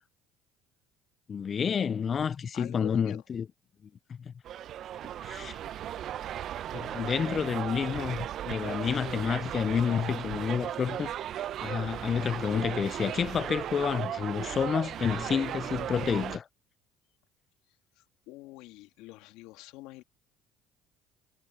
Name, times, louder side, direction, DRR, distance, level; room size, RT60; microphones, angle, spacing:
voice 1, 1.3-3.5 4.1-4.3 5.2-5.6 6.7-11.1 11.6-16.5, left 7 dB, 40° left, 0.4 m, -29 dB
voice 2, 2.5-3.2 18.0-20.0, left 19 dB, 70° left, 2.1 m, -46 dB
sound 1, 4.5-16.4, right 11 dB, 55° right, 0.7 m, -36 dB
hypercardioid pair, 70°, 0 cm